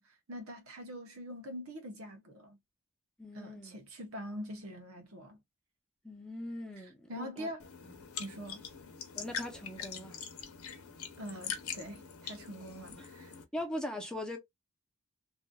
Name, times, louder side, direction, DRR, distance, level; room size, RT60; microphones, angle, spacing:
voice 1, 0.0-2.6 3.3-5.4 7.1-7.7 8.2-8.6 11.2-13.3, equal, 70° right, 1.0 m, -44 dB
voice 2, 3.2-3.8 6.0-7.5 9.2-10.2 13.0-13.1 13.5-14.4, left 1 dB, 5° left, 0.9 m, -40 dB
sound 1, 7.6-13.4, left 7 dB, 75° left, 0.9 m, -43 dB
3.0 x 2.6 x 2.3 m
head